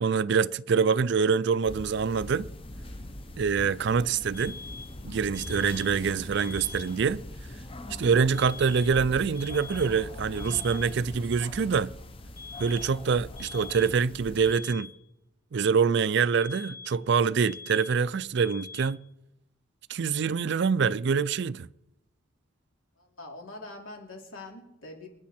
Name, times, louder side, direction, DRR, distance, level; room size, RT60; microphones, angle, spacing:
voice 1, 0.0-2.5 3.4-4.6 5.0-7.2 8.0-11.9 12.6-14.9 15.5-19.0 19.9-21.7, right 6 dB, 55° right, 0.4 m, -25 dB
sound 1, 1.7-14.5, left 1 dB, 25° left, 0.7 m, -41 dB
sound 2, 4.3-5.0 5.3-6.0 6.3-7.0 8.3-9.0 9.3-10.0 10.3-11.0 12.4-13.0 13.4-14.0 14.4-15.0 16.4-17.0 17.4-18.0 18.4-19.0, left 5 dB, 45° left, 2.5 m, -44 dB
voice 2, 23.0-25.1, left 2 dB, 80° left, 3.1 m, -44 dB
27.0 x 9.3 x 4.3 m
head